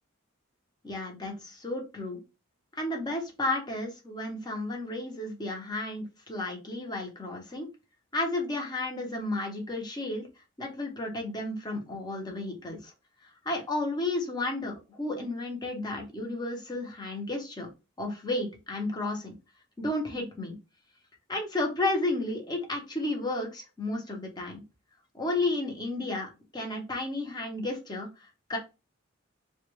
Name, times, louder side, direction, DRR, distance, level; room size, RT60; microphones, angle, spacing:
voice 1, 0.8-2.2 2.8-7.7 8.1-10.3 10.6-12.9 13.4-17.7 18.0-19.3 19.8-20.6 21.3-24.6 25.1-28.6, left 2 dB, 20° left, 1 dB, 0.6 m, -32 dB
2.2 x 2.2 x 3.0 m, 0.27 s
head